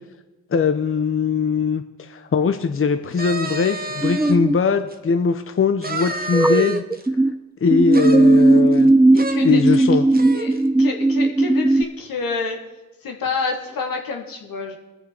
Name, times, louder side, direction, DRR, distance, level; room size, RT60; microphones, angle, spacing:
voice 1, 0.5-6.8 7.6-8.9 9.4-10.0, left 5 dB, 40° left, 8 dB, 0.8 m, -21 dB
sound 1, 3.1-4.4 4.9-5.0 5.8-7.1 7.9-8.9 9.2-9.4 9.7-9.8 10.1-10.6, right 2 dB, 25° right, 1.2 m, -30 dB
sound 2, 4.0-4.6 6.3-7.3 7.7-11.8, right 2 dB, 5° right, 0.4 m, -16 dB
voice 2, 9.1-9.8 10.3-12.6 13.0-14.8, left 4 dB, 75° left, 2 dB, 1.9 m, -28 dB
20.0 x 6.8 x 4.5 m, 1.1 s
supercardioid pair, 40°, 35 cm